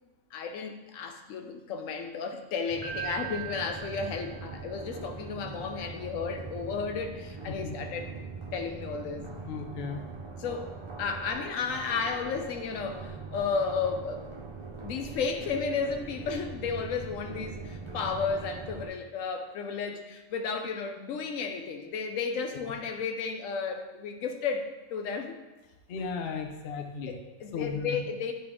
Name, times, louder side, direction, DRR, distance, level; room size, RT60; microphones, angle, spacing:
voice 1, 0.3-8.1 8.5-9.3 10.4-10.7 11.0-14.2 14.8-25.4 27.1-28.3, left 5 dB, 85° left, 5 dB, 1.0 m, -33 dB
sound 1, 2.7-18.9, right 4 dB, 45° right, 0.4 m, -42 dB
Piano, 2.8-4.9, right 13 dB, 5° left, 1.5 m, -40 dB
voice 2, 9.5-10.0 25.9-27.1 27.5-28.0, left 5 dB, 60° left, 4 dB, 0.7 m, -35 dB
8.8 x 3.1 x 3.5 m, 1.1 s
omnidirectional pair, 1.3 m